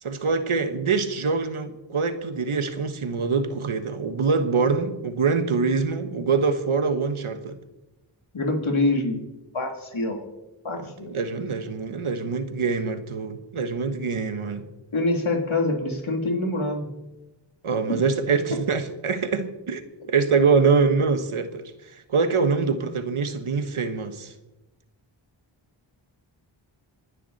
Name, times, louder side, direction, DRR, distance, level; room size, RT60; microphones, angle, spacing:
voice 1, 0.0-7.6 11.1-14.6 17.6-24.3, right 5 dB, 80° right, 9 dB, 1.4 m, -24 dB
voice 2, 8.3-9.2 9.5-10.3 10.6-11.2 14.9-16.9 17.9-18.0, left 2 dB, 75° left, 2 dB, 3.1 m, -25 dB
27.0 x 10.0 x 4.2 m, 1.0 s
cardioid pair, 40°, 49 cm